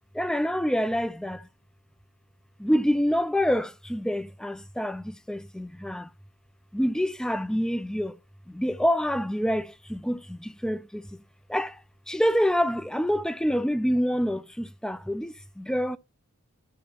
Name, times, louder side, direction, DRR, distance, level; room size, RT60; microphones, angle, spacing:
voice 1, 0.1-1.5 2.6-6.1 6.7-8.1 8.5-11.2 11.5-11.8 12.1-16.0, equal, 5° left, 0.4 m, -27 dB
13.5 x 5.2 x 2.9 m
head